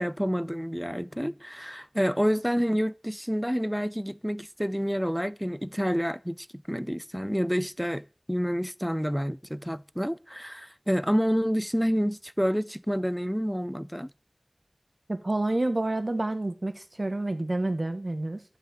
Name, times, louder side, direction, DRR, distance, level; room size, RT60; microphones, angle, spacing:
voice 1, 0.0-14.1, equal, ahead, 0.7 m, -28 dB
voice 2, 15.1-18.4, right 2 dB, 70° right, 1.4 m, -29 dB
12.0 x 5.5 x 8.9 m
wide cardioid pair, 40°, 0 cm